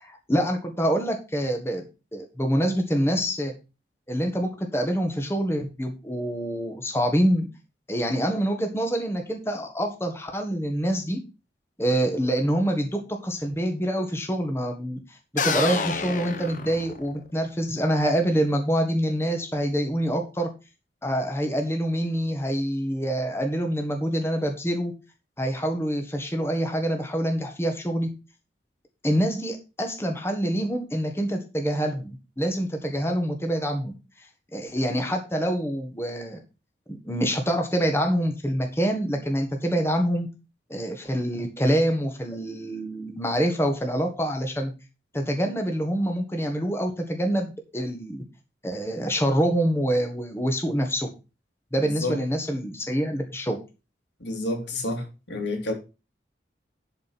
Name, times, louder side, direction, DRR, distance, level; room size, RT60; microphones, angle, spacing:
voice 1, 0.0-1.8 2.1-3.5 4.1-7.5 7.9-11.2 11.8-20.5 21.0-24.9 25.4-28.1 29.0-36.4 36.9-40.3 40.7-44.7 45.1-48.2 48.6-51.1 51.7-53.6, equal, 15° left, 1.6 m, -26 dB
sound 1, 15.4-17.3, left 4 dB, 45° left, 1.2 m, -28 dB
voice 2, 54.2-55.7, left 2 dB, 85° left, 3.4 m, -29 dB
12.0 x 5.1 x 5.8 m
head